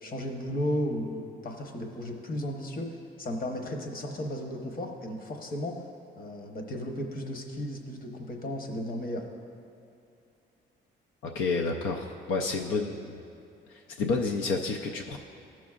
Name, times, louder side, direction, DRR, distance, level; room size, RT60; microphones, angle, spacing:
voice 1, 0.0-5.8 6.2-9.2, equal, 45° left, 2 dB, 1.0 m, -34 dB
voice 2, 11.2-13.2 13.7-15.2, left 4 dB, 90° left, 2 dB, 0.5 m, -30 dB
13.5 x 6.1 x 2.4 m, 2.6 s
cardioid pair, 90°, 20 cm